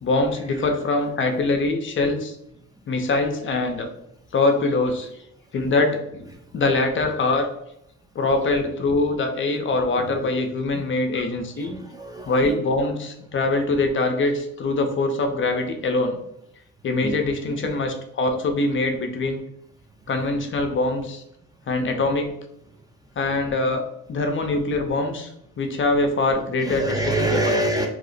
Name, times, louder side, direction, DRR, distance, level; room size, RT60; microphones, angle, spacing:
voice 1, 0.0-2.4 2.9-3.9 4.3-5.1 5.5-6.3 6.5-7.5 8.1-11.7 12.3-16.2 16.8-19.4 20.1-21.2 21.7-22.4 23.2-23.8 24.1-25.3 25.6-27.0 27.3-27.5, left 2 dB, 40° left, 5 dB, 0.5 m, -23 dB
voice 2, 11.6-12.6 17.0-17.2 17.6-17.7 26.6-27.9, right 1 dB, 15° right, 1 dB, 0.4 m, -25 dB
2.8 x 2.0 x 3.9 m, 0.77 s
cardioid pair, 90°, 30 cm